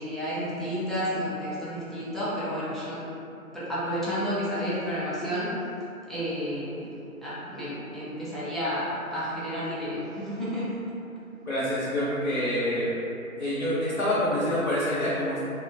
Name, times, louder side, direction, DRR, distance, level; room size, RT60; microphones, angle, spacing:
voice 1, 0.0-3.1 3.5-5.6 6.1-10.8, equal, ahead, -12 dB, 0.4 m, -31 dB
voice 2, 11.5-12.9 13.4-15.4, left 1 dB, 50° left, -11 dB, 0.7 m, -26 dB
2.6 x 2.2 x 2.4 m, 2.7 s
figure-of-eight pair, 160°, 43 cm